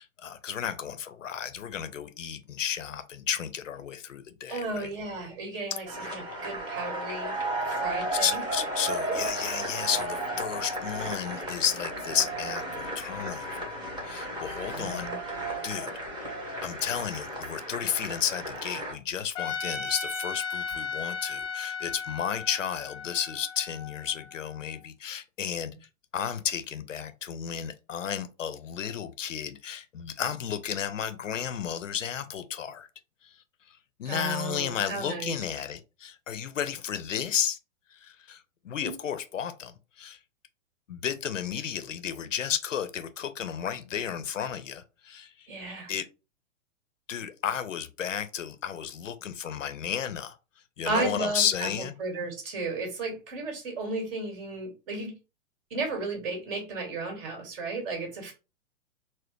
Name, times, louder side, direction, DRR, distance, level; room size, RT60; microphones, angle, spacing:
voice 1, 0.0-4.9 8.1-13.5 14.0-15.1 15.6-15.9 16.2-16.3 16.6-25.7 26.1-32.9 33.2-33.3 33.7-37.6 37.9-40.2 40.9-45.5 45.9-46.1 47.1-50.4 50.8-51.9, left 8 dB, 70° left, 0.6 m, -33 dB
voice 2, 4.5-7.4 7.7-8.4 9.1-9.2 14.7-15.2 34.1-35.4 38.8-38.9 45.5-45.9 50.9-55.1 55.7-58.3, right 3 dB, 45° right, 1.8 m, -34 dB
sound 1, 5.9-18.9, right 1 dB, 10° right, 1.1 m, -34 dB
Trumpet, 19.4-24.5, left 5 dB, 15° left, 0.5 m, -36 dB
4.2 x 2.0 x 3.1 m
figure-of-eight pair, 110°, 39 cm